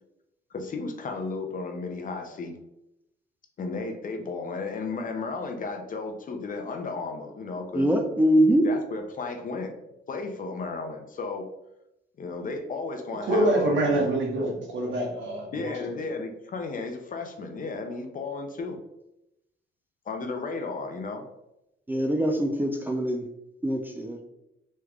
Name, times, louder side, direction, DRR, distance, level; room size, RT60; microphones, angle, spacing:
voice 1, 0.5-2.6 3.6-7.9 8.6-9.7 10.1-11.5 12.2-14.0 15.5-18.8 20.1-21.2, left 3 dB, 40° left, 4 dB, 0.5 m, -34 dB
voice 2, 7.7-8.7 21.9-23.3 23.6-24.2, equal, 10° right, 2 dB, 0.3 m, -23 dB
voice 3, 13.2-15.8, right 1 dB, 75° right, -1 dB, 1.0 m, -25 dB
3.2 x 3.1 x 2.4 m, 0.88 s
cardioid pair, 90°, 20 cm